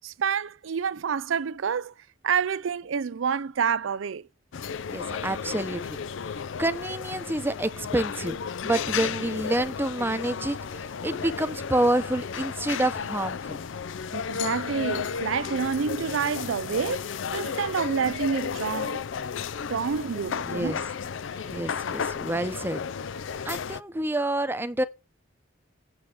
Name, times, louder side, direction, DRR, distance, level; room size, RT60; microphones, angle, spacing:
voice 1, 0.0-1.9 2.2-4.3 14.1-19.0 19.7-20.8, right 6 dB, 90° right, 0.5 m, -28 dB
sound 1, 4.5-23.8, left 6 dB, 75° left, 0.5 m, -33 dB
voice 2, 4.9-6.0 6.6-13.6 20.5-20.8 21.5-22.8 23.4-24.8, right 1 dB, 10° right, 0.8 m, -28 dB
8.8 x 7.5 x 4.9 m
head